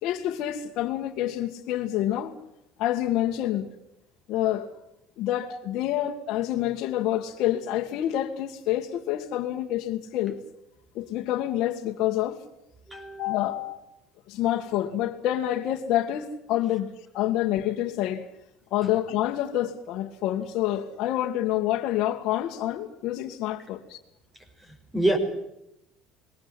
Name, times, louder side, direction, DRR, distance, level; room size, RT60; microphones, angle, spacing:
voice 1, 0.0-2.3 2.8-3.7 4.3-4.7 5.2-10.4 11.0-12.4 13.2-13.8 14.3-18.2 18.7-24.0, left 12 dB, 65° left, 1.8 m, -27 dB
voice 2, 12.9-13.4 24.9-25.2, right 1 dB, 10° right, 5.2 m, -25 dB
21.5 x 18.0 x 9.8 m
cardioid pair, 120°, 0 cm